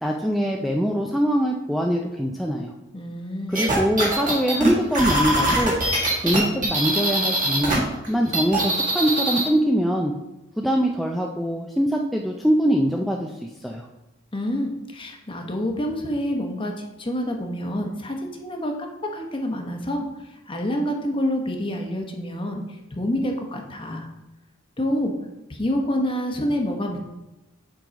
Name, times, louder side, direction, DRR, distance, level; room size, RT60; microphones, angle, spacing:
voice 1, 0.0-2.7 3.5-5.8 6.2-10.1 10.6-13.9, equal, ahead, 1 dB, 0.3 m, -23 dB
voice 2, 2.9-3.6 14.3-20.0 20.5-22.6 22.9-24.1 24.8-25.1 25.5-27.0, equal, 25° left, 3 dB, 0.9 m, -27 dB
sound 1, 3.5-7.8 8.0-9.5, right 1 dB, 40° right, 1.9 m, -22 dB
7.3 x 3.9 x 5.1 m, 0.95 s
head